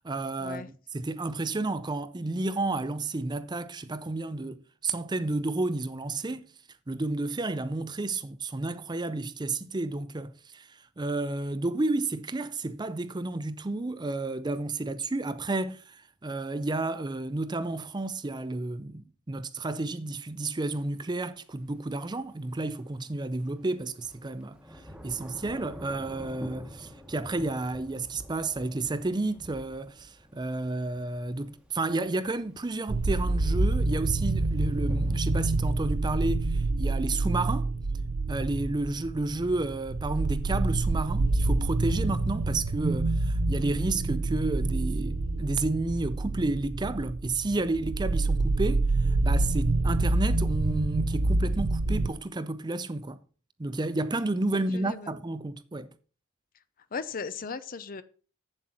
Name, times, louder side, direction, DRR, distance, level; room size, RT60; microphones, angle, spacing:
voice 1, 0.0-6.5 6.9-24.6 25.0-37.7 38.3-53.2 53.6-55.9, right 2 dB, 20° right, 0.5 m, -31 dB
Thunder / Rain, 20.5-20.6 23.5-35.2, equal, 5° right, 1.2 m, -47 dB
sound 1, 32.9-52.1, right 2 dB, 60° right, 0.7 m, -27 dB
voice 2, 54.7-55.1 56.9-58.0, left 5 dB, 40° left, 0.6 m, -37 dB
8.0 x 7.5 x 5.7 m
head